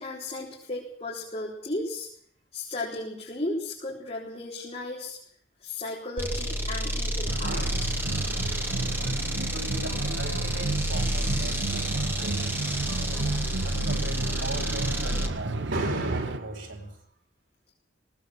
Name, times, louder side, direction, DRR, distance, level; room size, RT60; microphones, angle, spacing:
voice 1, 0.0-2.1 2.5-5.2 5.6-7.7, left 2 dB, 35° left, -5 dB, 4.9 m, -35 dB
sound 1, 6.2-15.4, equal, 10° right, 2.2 m, -30 dB
sound 2, 7.3-16.4, right 3 dB, 70° right, 0.9 m, -32 dB
voice 2, 7.4-7.8 9.3-12.7 13.2-17.0, right 2 dB, 90° right, 3 dB, 4.9 m, -37 dB
19.5 x 19.0 x 8.4 m, 0.67 s
head